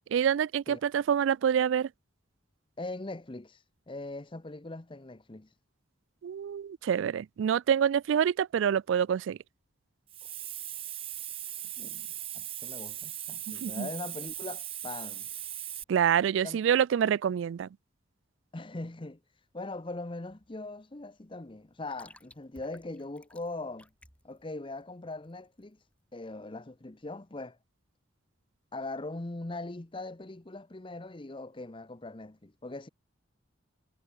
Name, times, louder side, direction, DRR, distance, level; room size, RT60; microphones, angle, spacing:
voice 1, 0.1-1.9 6.2-9.4 13.5-13.9 15.9-17.7, right 8 dB, 75° right, 0.3 m, -26 dB
voice 2, 2.8-5.5 11.8-12.1 12.3-15.3 16.4-16.6 18.5-19.2 19.5-23.9 24.2-25.8 26.1-27.6 28.7-32.9, left 2 dB, 25° left, 0.8 m, -41 dB
Hiss, 10.1-15.8, right 12 dB, 30° right, 0.6 m, -39 dB
sound 1, 19.3-26.1, left 1 dB, 5° left, 5.2 m, -60 dB
head